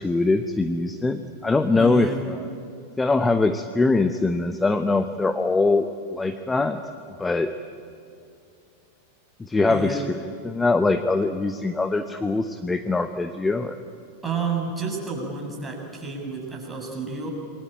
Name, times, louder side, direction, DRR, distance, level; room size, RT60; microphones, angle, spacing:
voice 1, 0.0-2.4 3.0-6.8 7.2-7.5 9.4-10.2 10.4-13.8, left 3 dB, 10° left, 9 dB, 1.0 m, -22 dB
voice 2, 1.7-2.2 9.6-10.1 14.2-17.3, right 4 dB, 10° right, 0 dB, 7.0 m, -30 dB
28.0 x 22.5 x 9.0 m, 2.6 s
figure-of-eight pair, 90°, 0 cm